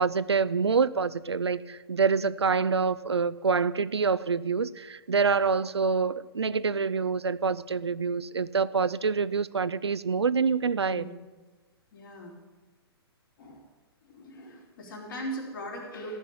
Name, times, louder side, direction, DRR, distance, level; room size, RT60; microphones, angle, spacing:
voice 1, 0.0-11.1, right 5 dB, 80° right, 0.5 m, -26 dB
voice 2, 10.8-11.2 11.9-12.3 13.4-13.6 14.1-16.2, right 1 dB, 55° left, 3.5 m, -39 dB
15.0 x 6.1 x 8.3 m
figure-of-eight pair, 120°, 14 cm